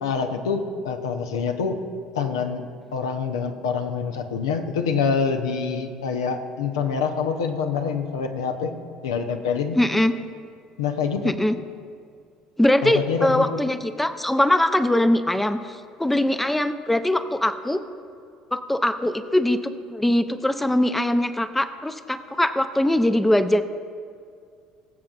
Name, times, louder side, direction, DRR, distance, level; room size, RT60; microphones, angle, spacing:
voice 1, 0.0-1.8 2.1-2.6 2.9-8.7 9.0-9.8 10.8-11.4 12.8-13.6, left 5 dB, 75° left, 5 dB, 0.7 m, -26 dB
voice 2, 9.7-10.1 11.2-11.6 12.6-17.8 18.5-19.6 19.9-23.6, left 1 dB, 5° left, 11 dB, 0.5 m, -21 dB
21.5 x 7.4 x 2.4 m, 2.2 s
hypercardioid pair, 60°, 2 cm